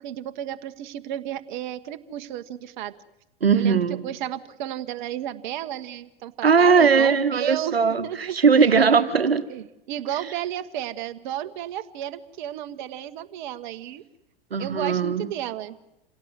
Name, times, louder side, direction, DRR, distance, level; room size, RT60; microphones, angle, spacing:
voice 1, 0.0-2.9 3.5-7.8 8.0-8.4 9.5-14.0 14.6-15.7, right 11 dB, 50° right, 10 dB, 1.4 m, -33 dB
voice 2, 3.4-4.0 6.4-9.4 14.5-15.3, right 5 dB, 85° right, 11 dB, 1.4 m, -19 dB
27.5 x 17.5 x 8.1 m, 0.89 s
figure-of-eight pair, 100°, 29 cm